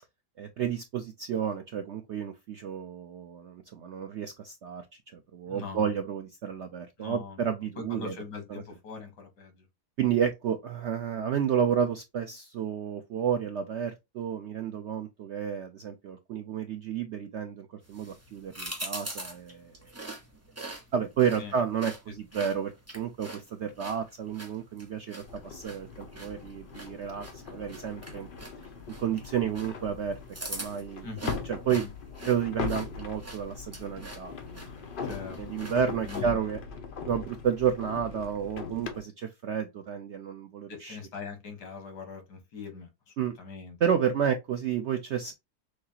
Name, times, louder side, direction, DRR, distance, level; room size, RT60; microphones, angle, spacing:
voice 1, 0.4-4.8 5.1-8.1 8.5-8.6 10.0-19.7 20.9-28.3 29.0-30.2 30.5-31.1 31.5-31.8 32.2-34.6 35.4-36.6 37.1-41.0 43.2-43.3 43.8-45.3, right 8 dB, 75° right, 0.6 m, -31 dB
voice 2, 5.5-6.0 7.0-9.7 21.4-21.5 31.0-31.4 31.7-31.9 35.0-35.6 35.9-36.4 40.7-43.8, left 4 dB, 85° left, 2.0 m, -42 dB
sound 1, 17.8-36.3, right 1 dB, 10° right, 0.8 m, -44 dB
sound 2, 25.2-39.0, left 5 dB, 45° left, 0.7 m, -40 dB
6.3 x 2.4 x 2.8 m
omnidirectional pair, 1.8 m